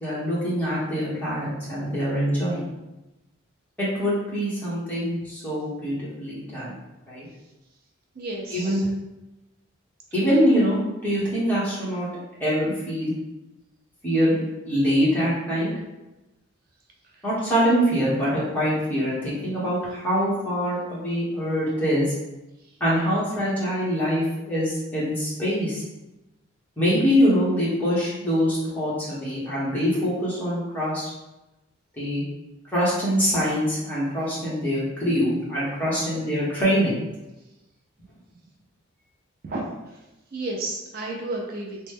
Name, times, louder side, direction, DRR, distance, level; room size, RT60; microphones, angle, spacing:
voice 1, 0.0-2.7 3.8-6.8 7.1-7.3 8.5-8.9 10.1-12.1 12.4-13.1 14.0-15.7 17.2-22.1 22.8-25.8 26.8-31.1 32.0-32.2 32.7-37.0, equal, 10° left, -9 dB, 1.0 m, -24 dB
voice 2, 8.2-8.6 39.4-39.6 40.3-41.9, right 2 dB, 45° right, 0 dB, 0.4 m, -31 dB
3.0 x 2.1 x 3.4 m, 0.99 s
head